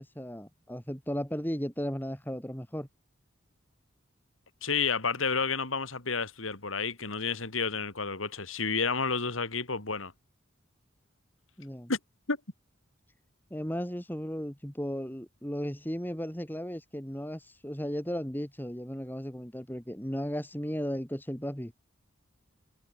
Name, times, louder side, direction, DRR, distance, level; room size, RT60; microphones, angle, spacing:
voice 1, 0.0-2.9 11.6-11.9 13.5-21.7, equal, 10° left, 3.8 m, -35 dB
voice 2, 4.6-10.1 11.9-12.0 12.3-12.4, left 5 dB, 85° left, 3.2 m, -30 dB
head